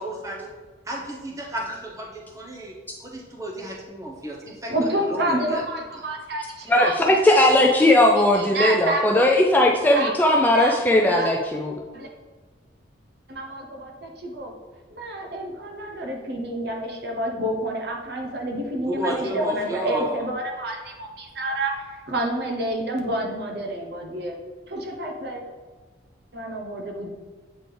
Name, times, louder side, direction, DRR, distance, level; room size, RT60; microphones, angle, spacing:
voice 1, 0.0-0.5 0.9-2.7 3.0-5.6 18.8-20.2, equal, 15° right, -1 dB, 0.9 m, -32 dB
voice 2, 4.7-7.0 7.3-7.9 8.3-9.2 9.9-10.8 11.0-11.3 11.9-12.1 13.3-14.5 14.9-24.3 24.7-25.4 26.3-27.1, right 1 dB, 55° right, 1 dB, 1.0 m, -29 dB
voice 3, 6.7-11.8, left 1 dB, 10° left, 0 dB, 0.3 m, -18 dB
8.1 x 4.0 x 3.3 m, 1.4 s
head